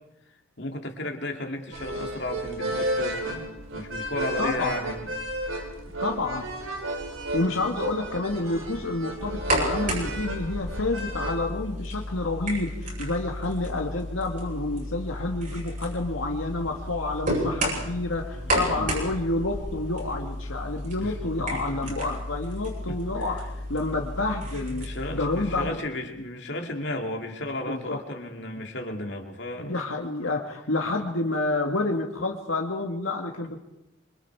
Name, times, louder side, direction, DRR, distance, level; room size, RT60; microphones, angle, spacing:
voice 1, 0.6-3.5 3.7-5.1 18.3-18.9 21.0-21.9 22.9-23.0 24.6-29.8, left 1 dB, 55° left, 3 dB, 2.7 m, -34 dB
sound 1, 1.7-11.4, right 1 dB, 80° right, 4.1 m, -33 dB
voice 2, 4.4-4.8 6.0-6.4 7.3-24.9 25.1-25.8 27.7-28.0 29.6-33.6, left 2 dB, 80° left, 2 dB, 1.9 m, -29 dB
sound 2, 9.2-25.7, equal, 40° right, 8.0 m, -32 dB
27.0 x 24.5 x 4.8 m, 0.85 s
head